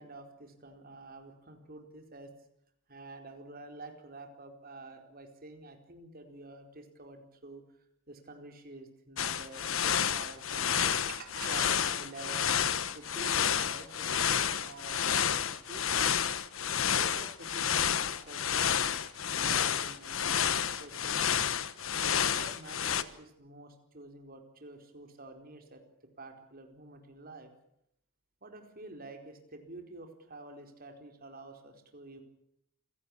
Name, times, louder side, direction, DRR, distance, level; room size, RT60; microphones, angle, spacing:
voice 1, 0.0-2.3 2.9-7.6 8.1-16.1 16.8-18.9 19.3-21.4 21.9-27.5 28.4-32.2, right 2 dB, 45° right, 5 dB, 4.5 m, -48 dB
sound 1, 9.2-23.0, left 8 dB, 70° left, 1.3 m, -30 dB
28.0 x 17.5 x 8.6 m, 0.78 s
head